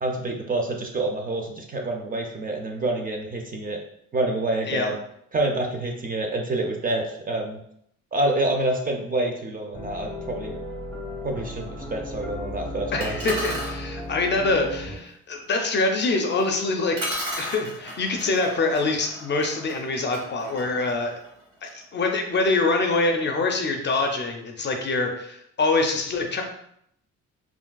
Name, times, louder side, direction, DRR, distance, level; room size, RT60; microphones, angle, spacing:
voice 1, 0.0-3.8 4.1-5.0 5.3-7.6 8.1-10.6 11.2-13.2, right 2 dB, 30° right, 2 dB, 0.5 m, -27 dB
sound 1, 9.7-15.0, left 1 dB, 5° left, 0.7 m, -35 dB
voice 2, 12.9-17.0 17.4-21.1 21.6-26.4, left 3 dB, 40° left, 3 dB, 0.5 m, -25 dB
sound 2, 13.0-13.8 16.4-16.5 17.0-21.8, equal, 90° right, 1.2 m, -35 dB
3.3 x 2.4 x 2.2 m, 0.73 s
cardioid pair, 90°, 30 cm